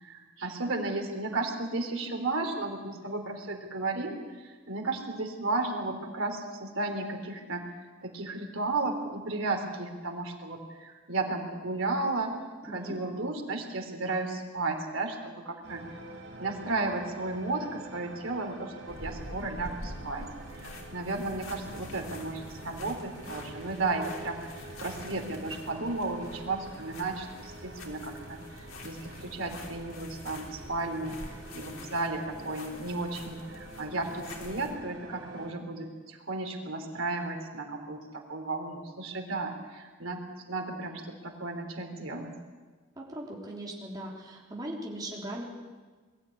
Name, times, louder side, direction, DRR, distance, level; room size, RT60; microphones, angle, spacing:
voice 1, 0.0-7.6 8.0-12.3 12.7-15.8 16.4-20.3 20.9-24.5 24.8-31.2 31.5-40.2 40.5-42.3, right 3 dB, 85° right, 3 dB, 3.3 m, -34 dB
voice 2, 12.7-13.0 42.9-45.4, right 1 dB, 20° right, -2 dB, 3.7 m, -39 dB
sound 1, 15.6-35.5, right 2 dB, 65° right, 3.7 m, -47 dB
sound 2, 18.9-34.8, left 2 dB, 85° left, 3.4 m, -46 dB
22.0 x 13.5 x 9.6 m, 1.4 s
head